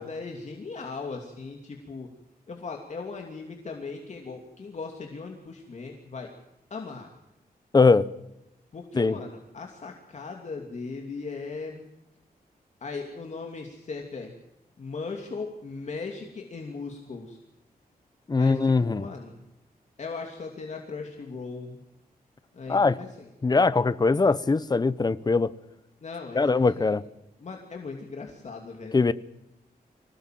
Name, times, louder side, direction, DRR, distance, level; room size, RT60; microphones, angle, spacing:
voice 1, 0.0-2.1 2.5-6.3 6.7-7.1 8.7-11.9 12.8-14.3 14.8-17.4 18.3-19.4 20.0-21.8 22.5-23.3 26.0-26.9 27.4-28.9, left 4 dB, 50° left, 2 dB, 2.8 m, -38 dB
voice 2, 7.7-8.1 9.0-9.2 18.3-19.1 22.7-23.0 23.4-25.5 26.3-27.0 28.9-29.1, left 4 dB, 25° left, 15 dB, 0.9 m, -21 dB
26.0 x 18.0 x 7.7 m, 0.90 s
wide cardioid pair, 150°, 16 cm